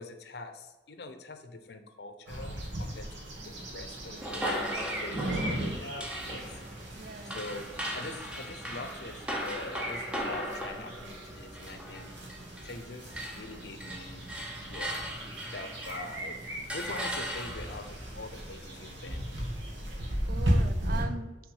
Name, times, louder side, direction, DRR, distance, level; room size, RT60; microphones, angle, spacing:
voice 1, 0.0-6.6 7.2-7.6 7.9-12.1 12.6-14.2 14.6-15.0 15.5-19.2, left 2 dB, 60° left, 8 dB, 0.6 m, -44 dB
sound 1, 2.3-21.0, right 1 dB, 75° right, 1.6 m, -36 dB
voice 2, 4.1-4.5 6.9-7.5 20.3-21.4, right 3 dB, 50° right, 11 dB, 0.4 m, -41 dB
sound 2, 4.2-12.8 13.1-16.2 16.7-17.9, equal, 5° right, 0.7 m, -38 dB
5.9 x 3.6 x 5.4 m, 1.1 s
head